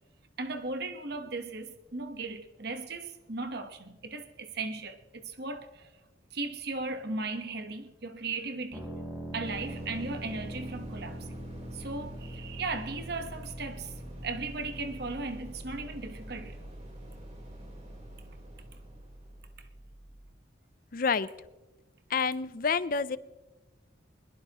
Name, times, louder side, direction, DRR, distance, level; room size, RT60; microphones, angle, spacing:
voice 1, 0.4-5.9 6.3-8.9 9.3-11.4 11.7-13.9 14.2-16.6, right 3 dB, 55° right, 1.2 m, -37 dB
sound 1, 8.7-20.3, right 1 dB, 10° right, 4.3 m, -43 dB
sound 2, 9.4-19.6, equal, 35° right, 3.6 m, -51 dB
voice 2, 20.9-21.3 22.1-23.2, left 5 dB, 45° left, 0.5 m, -28 dB
21.5 x 21.5 x 3.0 m
head